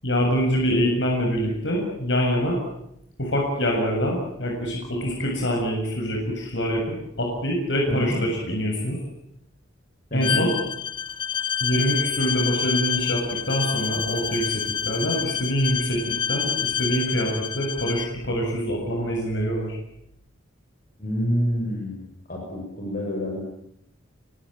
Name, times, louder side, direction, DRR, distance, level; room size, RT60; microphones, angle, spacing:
voice 1, 0.0-2.6 3.2-9.0 10.1-10.5 11.6-19.8, equal, 65° left, 0 dB, 7.1 m, -25 dB
voice 2, 7.9-8.2 10.1-10.5 21.0-22.0 22.3-23.4, equal, 45° left, 0 dB, 7.9 m, -27 dB
Bowed string instrument, 10.2-18.1, left 8 dB, 25° left, 1.1 m, -28 dB
25.5 x 23.5 x 9.0 m, 0.78 s
head